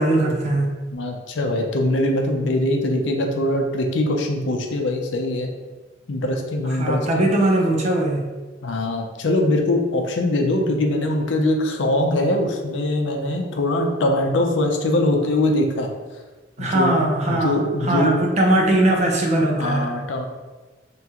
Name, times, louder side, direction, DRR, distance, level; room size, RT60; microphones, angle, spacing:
voice 1, 0.0-0.7 6.8-8.3 16.6-19.9, right 1 dB, 40° right, 1 dB, 0.5 m, -20 dB
voice 2, 0.9-5.5 6.1-7.2 8.6-15.9 16.6-17.0 17.3-18.1 19.6-20.3, left 1 dB, 80° left, 2 dB, 0.5 m, -22 dB
2.9 x 2.9 x 3.5 m, 1.3 s
head